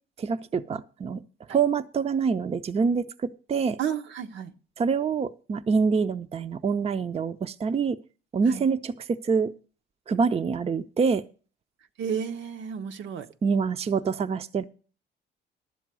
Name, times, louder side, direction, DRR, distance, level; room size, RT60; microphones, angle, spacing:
voice 1, 0.2-1.2 1.5-3.8 4.8-8.0 8.3-9.5 10.1-11.2 13.4-14.6, right 5 dB, 30° right, 12 dB, 0.5 m, -26 dB
voice 2, 3.8-4.5 8.5-8.6 12.0-13.3, right 8 dB, 70° right, 7 dB, 0.8 m, -32 dB
11.5 x 7.4 x 6.1 m, 0.38 s
cardioid pair, 90°, 20 cm